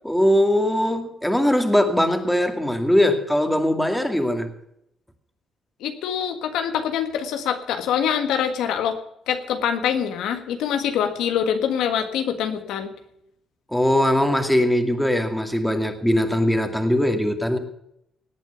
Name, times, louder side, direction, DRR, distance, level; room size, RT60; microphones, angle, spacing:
voice 1, 0.0-4.5 13.7-17.6, left 1 dB, 5° left, 5 dB, 2.3 m, -20 dB
voice 2, 5.8-9.0 9.3-12.9, left 8 dB, 85° left, 7 dB, 1.7 m, -24 dB
18.5 x 8.4 x 7.0 m, 0.76 s
cardioid pair, 90°, 0 cm